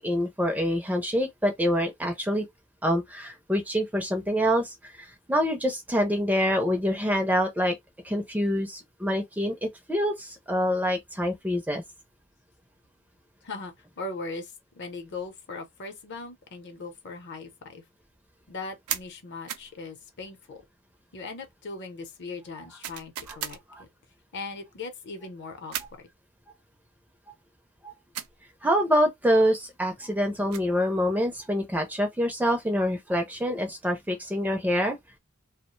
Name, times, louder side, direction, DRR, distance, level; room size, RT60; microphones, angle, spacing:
voice 1, 0.0-2.5 2.8-7.8 8.0-11.8 23.3-23.4 27.8-27.9 28.6-35.0, equal, 10° right, 0.4 m, -26 dB
voice 2, 13.4-17.8 18.5-20.6 21.1-23.9 24.3-26.1, left 3 dB, 55° left, 0.7 m, -39 dB
sound 1, 18.9-19.1 19.5-19.7 22.8-23.6 25.7-26.0 28.1-28.4 30.3-30.8, right 10 dB, 85° right, 0.4 m, -35 dB
2.4 x 2.1 x 3.0 m
head